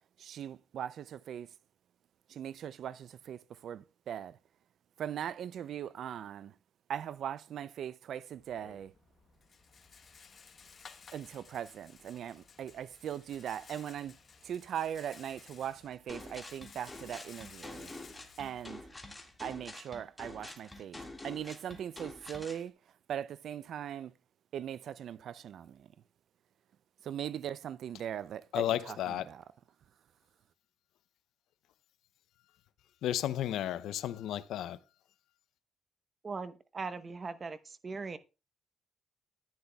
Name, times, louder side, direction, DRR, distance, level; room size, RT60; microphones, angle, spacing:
voice 1, 0.2-1.5 2.3-4.4 5.0-6.5 6.9-8.9 11.1-14.1 14.4-17.9 18.4-18.8 19.4-22.7 23.1-24.1 24.5-25.9 27.0-29.4, right 9 dB, 65° right, 0.4 m, -40 dB
Rattle, 8.3-19.4, left 5 dB, 45° left, 1.1 m, -56 dB
sound 1, 16.1-22.6, left 2 dB, 10° left, 1.8 m, -47 dB
voice 2, 28.5-29.3 33.0-34.8, left 12 dB, 80° left, 0.5 m, -33 dB
voice 3, 36.2-38.2, right 4 dB, 35° right, 0.8 m, -40 dB
13.5 x 9.6 x 2.3 m
cardioid pair, 90°, 0 cm